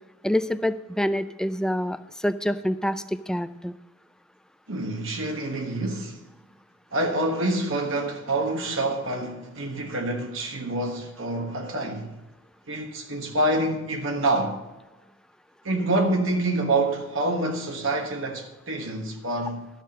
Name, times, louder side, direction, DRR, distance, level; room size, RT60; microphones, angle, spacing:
voice 1, 0.2-3.7, equal, 5° left, 0.3 m, -26 dB
voice 2, 4.7-6.2 6.9-12.2 12.7-14.6 15.6-19.6, right 2 dB, 75° right, 1.3 m, -27 dB
12.0 x 6.6 x 6.4 m
head